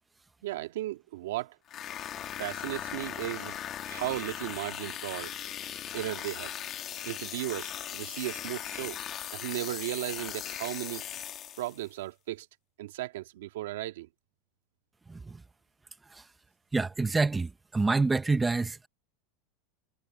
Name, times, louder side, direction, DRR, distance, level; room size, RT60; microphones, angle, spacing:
voice 1, 0.4-1.6 2.4-3.6 3.9-5.3 5.9-6.5 7.0-9.0 9.3-11.1 11.6-12.5 12.8-14.1, right 15 dB, 80° right, 1.9 m, -35 dB
sound 1, 1.7-11.9, left 10 dB, 25° left, 2.2 m, -39 dB
voice 2, 15.1-15.4 16.1-16.2 16.7-18.9, right 3 dB, 10° right, 0.7 m, -27 dB
supercardioid pair, 170°, 0 cm